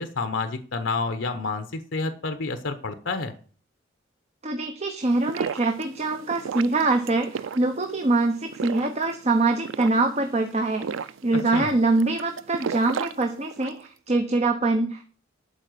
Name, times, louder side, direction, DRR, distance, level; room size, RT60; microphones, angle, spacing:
voice 1, 0.0-3.3 11.5-11.7, left 3 dB, 70° left, 9 dB, 0.9 m, -29 dB
voice 2, 4.4-15.1, right 2 dB, 35° right, 5 dB, 1.0 m, -24 dB
sound 1, 5.0-13.9, right 6 dB, 80° right, 0.4 m, -35 dB
11.5 x 4.8 x 7.8 m, 0.43 s
head